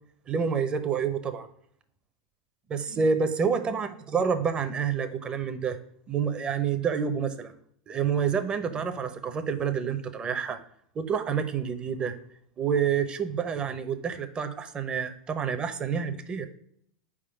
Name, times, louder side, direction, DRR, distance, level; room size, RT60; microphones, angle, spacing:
voice 1, 0.3-1.5 2.7-5.8 6.1-7.5 7.9-10.6 10.9-12.2 12.6-16.5, right 6 dB, 25° right, 9 dB, 0.7 m, -28 dB
4.7 x 3.7 x 5.6 m, 0.66 s
hypercardioid pair, 110°, 4 cm